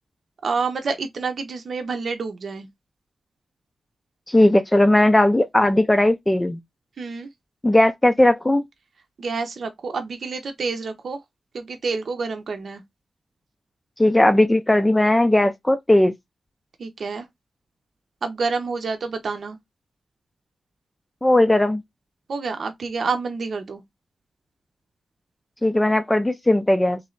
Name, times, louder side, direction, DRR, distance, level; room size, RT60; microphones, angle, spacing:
voice 1, 0.4-2.7 7.0-7.3 9.2-11.2 11.5-12.8 16.8-17.3 18.2-19.6 22.3-23.8, right 4 dB, 60° right, 0.8 m, -28 dB
voice 2, 4.3-6.6 7.6-8.6 14.0-16.1 21.2-21.8 25.6-27.0, left 1 dB, 10° left, 0.5 m, -17 dB
3.4 x 3.2 x 3.8 m
wide cardioid pair, 110°, 0 cm